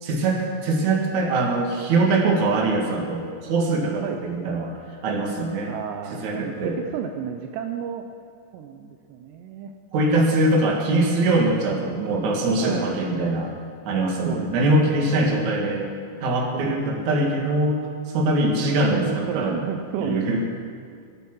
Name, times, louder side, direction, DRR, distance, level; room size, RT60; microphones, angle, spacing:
voice 1, 0.0-4.7 5.0-5.7 6.1-6.8 9.9-13.5 13.8-15.9 16.2-17.8 18.1-19.6 20.0-20.4, right 2 dB, 50° right, 0 dB, 2.9 m, -22 dB
voice 2, 5.7-8.1 8.5-9.7 12.6-13.0 14.2-15.4 16.5-17.1 18.8-20.5, right 8 dB, 80° right, 5 dB, 2.9 m, -33 dB
24.0 x 9.0 x 6.2 m, 2.3 s
omnidirectional pair, 5.1 m